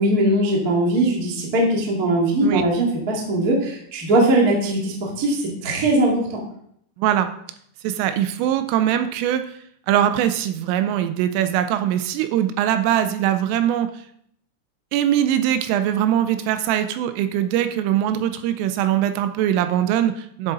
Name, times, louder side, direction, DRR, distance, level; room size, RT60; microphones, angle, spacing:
voice 1, 0.0-6.4, right 1 dB, 55° right, -2 dB, 0.9 m, -20 dB
voice 2, 7.0-7.3 7.8-9.4 9.9-13.9 14.9-20.5, right 11 dB, 85° right, 9 dB, 3.1 m, -21 dB
11.5 x 7.8 x 4.0 m, 0.69 s
omnidirectional pair, 5.9 m